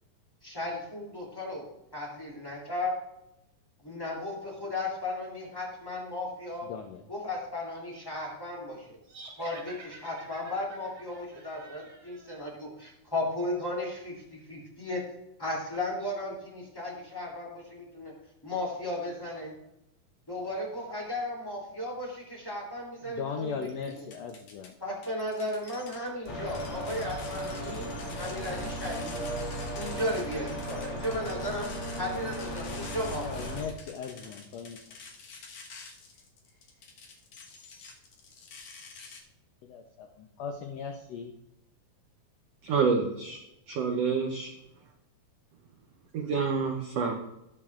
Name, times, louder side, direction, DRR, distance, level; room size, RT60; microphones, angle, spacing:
voice 1, 0.4-1.7 1.9-2.9 3.8-6.7 7.1-9.0 9.4-15.0 15.4-18.1 18.4-19.5 20.3-24.1 24.8-27.9 28.2-29.3 29.7-31.7 32.0-33.6 34.2-34.3, left 1 dB, 5° left, -3 dB, 2.5 m, -35 dB
voice 2, 6.6-7.0 23.1-24.7 33.1-34.8 39.6-41.3, left 6 dB, 80° left, 4 dB, 1.5 m, -38 dB
sound 1, 9.1-12.5, right 4 dB, 55° right, 3.1 m, -48 dB
sound 2, 23.6-24.7 25.0-39.2, left 4 dB, 60° left, 2.4 m, -48 dB
sound 3, 26.3-33.6, equal, 40° left, 1.0 m, -36 dB
voice 3, 42.6-43.4 43.7-44.5 46.1-47.1, right 5 dB, 80° right, 3 dB, 1.4 m, -27 dB
18.5 x 6.5 x 2.5 m, 0.87 s
omnidirectional pair, 4.0 m